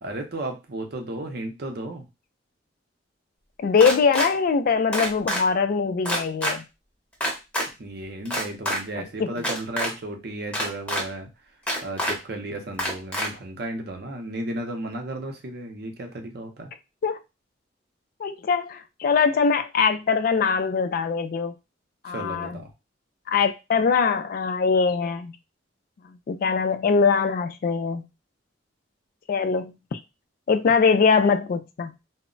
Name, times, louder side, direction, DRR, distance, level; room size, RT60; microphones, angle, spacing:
voice 1, 0.0-2.0 7.8-11.3 11.8-16.7 22.1-22.7, right 1 dB, 60° right, 0.6 m, -34 dB
voice 2, 3.6-6.6 9.0-9.3 17.0-17.2 18.2-21.5 22.0-22.6 23.3-25.4 26.1-28.1 29.3-30.0 30.5-31.9, left 5 dB, 50° left, 0.3 m, -22 dB
sound 1, 3.8-4.3 4.9-5.4 6.0-6.5 7.2-7.7 8.3-8.8 9.4-9.9 10.5-11.0 11.7-12.1 12.8-13.3, equal, 5° left, 0.7 m, -26 dB
2.1 x 2.0 x 3.7 m
head